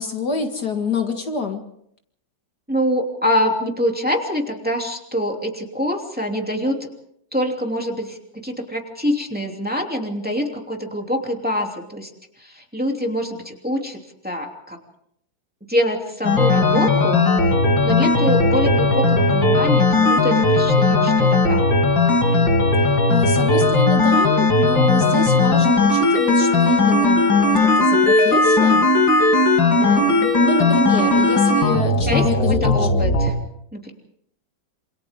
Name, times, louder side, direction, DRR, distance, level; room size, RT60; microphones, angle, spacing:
voice 1, 0.0-1.6 22.8-28.9 29.8-32.9, left 3 dB, 60° left, 4 dB, 2.3 m, -26 dB
voice 2, 2.7-6.9 7.3-8.2 8.4-12.1 12.4-14.8 15.7-17.2 17.8-21.6 29.6-30.1 32.1-32.3 32.6-33.3 33.7-33.9, equal, 5° right, 1 dB, 2.9 m, -25 dB
sound 1, 16.2-33.3, left 2 dB, 90° left, 3.9 m, -17 dB
27.5 x 27.0 x 3.7 m, 0.70 s
omnidirectional pair, 2.0 m